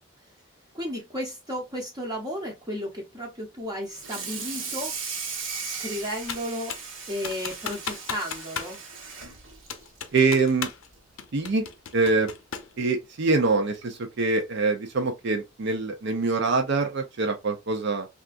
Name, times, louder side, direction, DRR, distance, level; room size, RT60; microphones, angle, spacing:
voice 1, 0.7-4.9 5.6-6.8 7.1-8.8, equal, 20° right, 0.7 m, -33 dB
Water tap faucet / Sink (filling or washing), 3.9-10.5 10.9-11.2 11.5-11.6 12.0-12.1 13.2-13.3 13.8-14.0, right 5 dB, 75° right, 1.1 m, -37 dB
Computer keyboard, 6.3-6.9 7.2-8.8 9.0-9.1 9.7-10.9 11.2-12.8, left 7 dB, 75° left, 0.6 m, -35 dB
voice 2, 10.1-10.7 11.3-11.7 11.9-12.3 12.8-18.1, right 3 dB, 60° right, 0.5 m, -24 dB
3.5 x 2.4 x 2.4 m
head